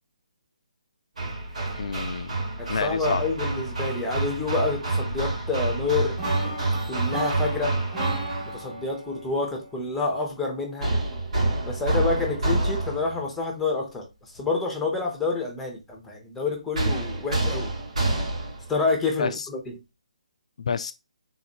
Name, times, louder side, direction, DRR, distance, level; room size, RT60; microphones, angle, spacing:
Hammer, 1.2-8.6 10.8-13.2 16.7-18.7, right 2 dB, 65° right, 2.1 m, -28 dB
voice 1, 1.8-2.4 2.7-3.2 19.2-19.5 20.6-20.9, left 5 dB, 55° left, 0.4 m, -29 dB
voice 2, 2.6-6.2 6.4-6.6 6.9-7.8 8.5-10.9 11.7-17.7 18.7-19.8, left 3 dB, 5° left, 0.9 m, -28 dB
sound 1, 6.2-10.1, right 1 dB, 15° right, 2.5 m, -34 dB
4.0 x 3.8 x 3.0 m
figure-of-eight pair, 155°, 4 cm